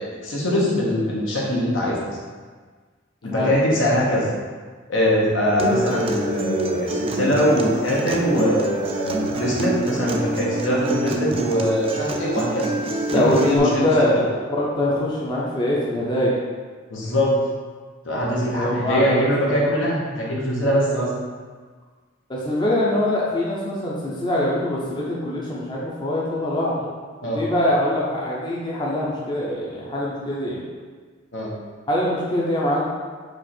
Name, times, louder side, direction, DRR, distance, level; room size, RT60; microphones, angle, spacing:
voice 1, 0.0-2.2 3.2-4.3 4.9-12.7 13.1-14.1 16.9-17.3 18.0-21.1 27.2-27.4 31.3-31.5, equal, 75° left, -4 dB, 1.1 m, -22 dB
Acoustic guitar, 5.6-13.6, right 1 dB, 30° right, 0.4 m, -26 dB
voice 2, 13.1-16.4 18.5-19.5 22.3-26.8 27.2-30.6 31.9-32.8, left 1 dB, 25° left, -5 dB, 0.6 m, -23 dB
4.8 x 2.5 x 4.3 m, 1.5 s
head